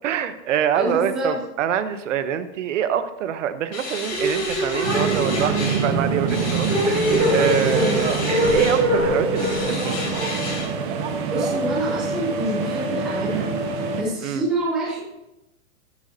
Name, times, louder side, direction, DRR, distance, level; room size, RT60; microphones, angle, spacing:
voice 1, 0.0-7.0 7.3-10.1 14.2-14.4, right 9 dB, 60° right, 12 dB, 0.9 m, -25 dB
voice 2, 0.8-1.4 7.7-7.9 11.3-13.5 14.0-15.0, right 1 dB, ahead, -6 dB, 0.5 m, -27 dB
sound 1, 3.7-5.9 6.3-8.8 9.3-10.7, left 3 dB, 30° left, 2.6 m, -32 dB
sound 2, 4.1-11.3, equal, 15° right, 3.2 m, -24 dB
sound 3, 4.8-14.0, right 5 dB, 35° right, 1.1 m, -25 dB
15.0 x 8.4 x 2.7 m, 0.94 s
supercardioid pair, 165°, 43 cm